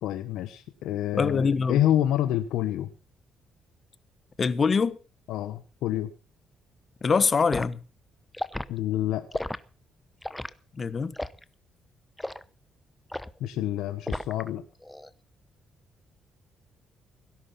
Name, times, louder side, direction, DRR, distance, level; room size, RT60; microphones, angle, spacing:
voice 1, 0.0-2.9 5.3-6.1 8.7-9.2 13.4-14.6, left 12 dB, 90° left, 1.0 m, -28 dB
voice 2, 1.1-1.8 4.4-5.0 7.0-7.8 10.8-11.1, left 5 dB, 40° left, 1.2 m, -24 dB
Liquid, 7.5-7.7 8.3-8.7 9.3-9.6 10.2-10.5 11.1-11.4 12.2-12.4 13.1-13.4 14.1-14.5 14.8-15.1, left 1 dB, 10° left, 0.9 m, -33 dB
17.5 x 11.0 x 5.7 m
cardioid pair, 90°, 0 cm